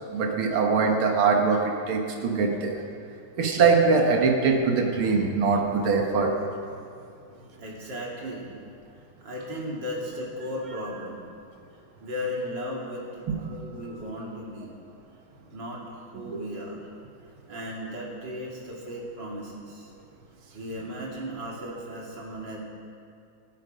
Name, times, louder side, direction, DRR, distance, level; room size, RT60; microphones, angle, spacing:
voice 1, 0.1-2.8 3.4-6.3 16.3-16.4, right 4 dB, 85° right, 2 dB, 2.2 m, -22 dB
voice 2, 7.6-8.5 8.9-11.3 11.7-14.7 15.4-16.9 17.5-19.9 20.5-22.6, equal, 60° right, -4 dB, 3.3 m, -36 dB
16.0 x 14.0 x 5.1 m, 2.4 s
omnidirectional pair, 2.2 m